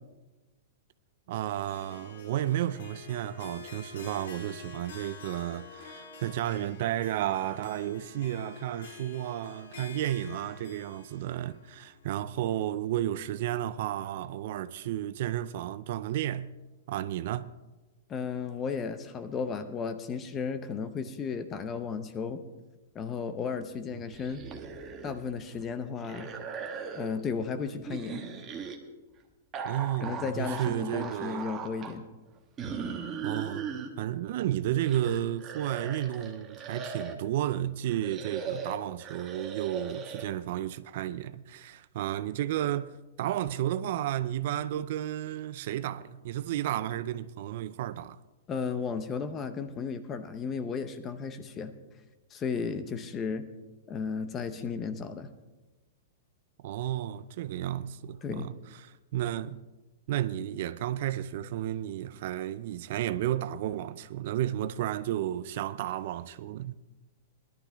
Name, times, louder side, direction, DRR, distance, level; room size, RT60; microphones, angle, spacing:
voice 1, 1.3-16.5 16.9-17.5 23.9-24.0 29.6-31.5 33.2-33.7 34.0-48.2 56.6-59.7 60.1-66.7, right 12 dB, 45° right, 0.4 m, -32 dB
Harp, 1.7-12.9, left 5 dB, 70° left, 2.1 m, -48 dB
voice 2, 18.1-22.4 22.9-24.4 25.0-26.3 26.9-28.2 30.0-32.0 48.5-51.7 52.3-53.5 53.9-55.3 58.2-58.5, left 5 dB, 15° left, 0.7 m, -34 dB
sound 1, 24.1-25.3 25.5-27.2 27.8-28.8 29.5-31.9 32.6-33.9 34.5-37.3 37.9-40.2, right 6 dB, 20° right, 1.1 m, -39 dB
19.5 x 12.0 x 3.4 m
hypercardioid pair, 170°, 0 cm